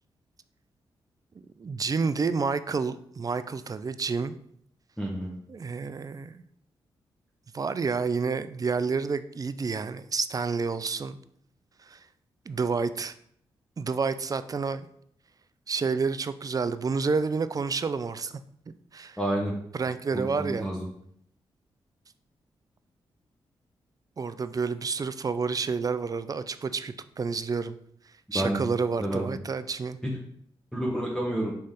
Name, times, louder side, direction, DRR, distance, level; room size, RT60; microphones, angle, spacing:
voice 1, 1.6-4.4 5.5-6.4 7.5-11.2 11.8-12.0 12.5-13.1 13.8-14.9 15.7-18.3 18.9-19.2 19.7-20.7 24.2-27.8 28.3-30.0, right 5 dB, 35° right, 13 dB, 0.4 m, -29 dB
voice 2, 5.0-5.3 19.2-19.5 20.1-20.9 28.3-28.6 29.0-29.3 30.0-30.1 30.7-31.5, right 1 dB, 5° left, -4 dB, 1.0 m, -29 dB
4.1 x 3.2 x 3.7 m, 0.68 s
supercardioid pair, 40°, 11 cm